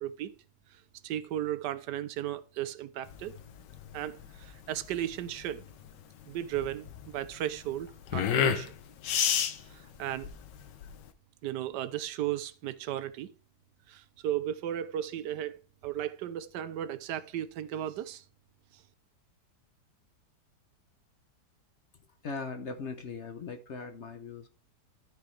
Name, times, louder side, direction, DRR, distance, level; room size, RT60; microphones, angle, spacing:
voice 1, 0.0-0.3 0.7-3.3 3.9-5.7 6.3-8.7 9.7-10.3 11.4-13.3 13.9-18.2 18.7-18.8, right 11 dB, 80° right, 1.2 m, -35 dB
sound 1, 3.1-11.1, left 8 dB, 90° left, 1.4 m, -32 dB
voice 2, 22.2-24.5, left 4 dB, 55° left, 0.8 m, -39 dB
13.0 x 4.9 x 3.2 m
omnidirectional pair, 1.8 m